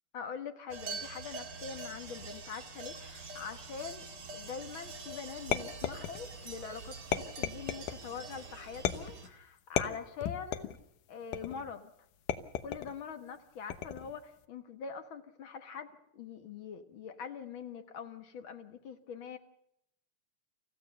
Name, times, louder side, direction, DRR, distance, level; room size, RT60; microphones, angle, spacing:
voice 1, 0.1-4.1 4.3-10.7 11.1-11.9 12.6-19.4, left 6 dB, 50° left, 8 dB, 1.6 m, -44 dB
sound 1, 0.7-9.3, right 3 dB, 40° right, 1.9 m, -45 dB
sound 2, 5.5-6.5 7.1-8.0 8.9-9.3 9.8-10.8 11.3-11.7 12.3-13.0 13.7-14.2, left 10 dB, 75° left, 2.6 m, -35 dB
28.0 x 15.0 x 6.7 m, 0.75 s
omnidirectional pair, 3.8 m